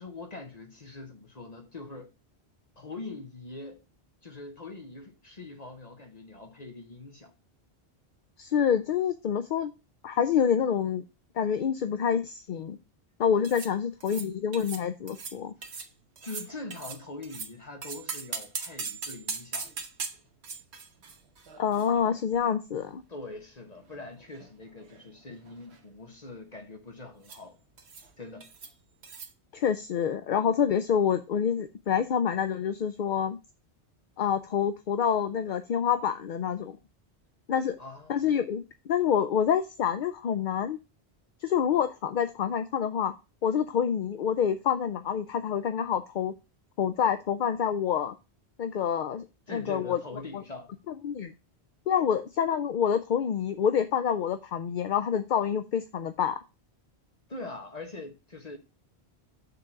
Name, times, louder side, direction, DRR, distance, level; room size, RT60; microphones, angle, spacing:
voice 1, 0.0-2.1 2.8-3.8 4.2-7.3 13.4-13.6 15.6-15.8 16.2-19.7 23.1-27.6 28.2-28.5 37.8-38.3 49.5-50.7 51.9-52.1 57.3-58.6, left 3 dB, 40° left, 1.1 m, -43 dB
voice 2, 8.4-9.7 10.0-11.0 11.4-12.8 13.2-15.5 21.6-23.0 29.5-33.4 34.2-36.8 37.5-37.8 38.1-40.8 41.4-43.1 43.4-46.3 46.8-48.2 48.6-50.0 50.3-50.4 51.0-51.3 51.9-56.4, left 8 dB, 55° left, 0.6 m, -27 dB
sound 1, 13.4-13.7 14.0-14.3 14.5-14.8 15.1-15.4 15.6-15.9 16.2-17.5 17.8-22.5 22.8-22.9 23.6-24.5 24.8-25.1 25.3-25.8 27.2-27.4 27.8-28.1 28.4-28.7 29.0-29.3, right 5 dB, 85° right, 1.2 m, -40 dB
6.7 x 3.7 x 5.8 m
omnidirectional pair, 1.1 m